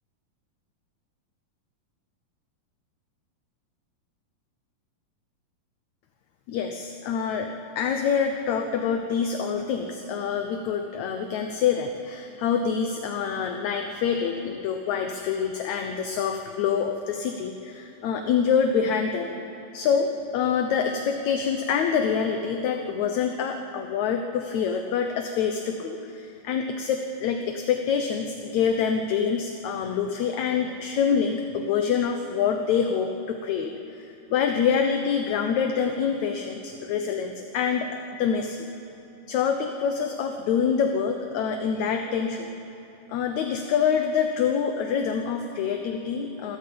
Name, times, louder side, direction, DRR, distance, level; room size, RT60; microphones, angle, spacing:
voice 1, 6.5-19.4 19.7-34.1 34.3-37.9 38.2-38.6 39.3-42.5 43.1-46.6, left 7 dB, 70° left, 5 dB, 2.0 m, -26 dB
27.5 x 13.5 x 8.6 m, 2.9 s
omnidirectional pair, 4.0 m